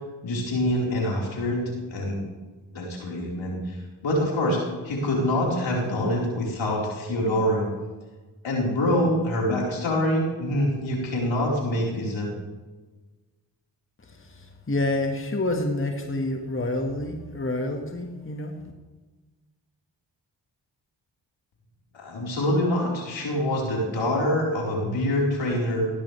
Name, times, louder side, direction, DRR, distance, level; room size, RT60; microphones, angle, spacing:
voice 1, 0.2-2.2 2.7-3.8 4.0-4.6 4.8-7.6 8.4-12.3 21.9-25.9, left 1 dB, 75° left, -3 dB, 4.6 m, -25 dB
voice 2, 14.0-18.6, left 2 dB, 25° left, 3 dB, 1.8 m, -28 dB
17.0 x 11.5 x 3.4 m, 1.3 s
cardioid pair, 50°, 46 cm